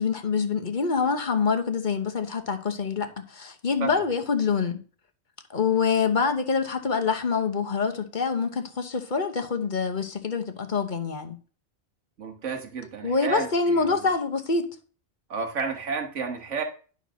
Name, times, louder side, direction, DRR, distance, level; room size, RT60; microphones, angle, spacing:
voice 1, 0.0-4.8 5.5-11.4 13.0-14.7, left 5 dB, 45° left, 1.1 m, -26 dB
voice 2, 12.2-14.1 15.3-16.6, right 4 dB, 85° right, 1.7 m, -31 dB
11.0 x 4.1 x 6.2 m
omnidirectional pair, 1.2 m